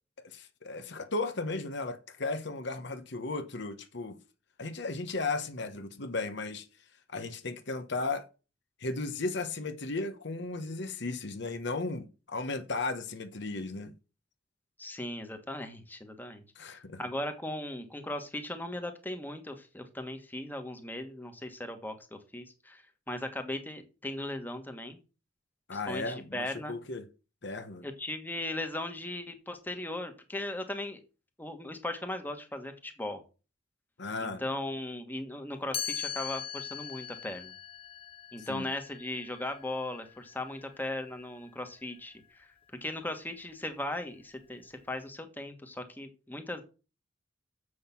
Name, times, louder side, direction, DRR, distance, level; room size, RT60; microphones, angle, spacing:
voice 1, 0.2-4.2 4.6-6.7 7.1-8.3 8.8-13.9 16.6-17.0 25.7-27.0 27.4-27.9 34.0-34.4 38.5-38.7, left 3 dB, 60° left, 1.1 m, -35 dB
voice 2, 14.8-25.0 25.7-26.8 27.8-31.0 31.4-33.2 34.2-37.5 38.3-42.5 42.8-46.6, left 1 dB, 10° left, 1.4 m, -38 dB
Chime, 35.7-41.6, left 9 dB, 30° left, 0.4 m, -41 dB
7.6 x 6.4 x 7.1 m
head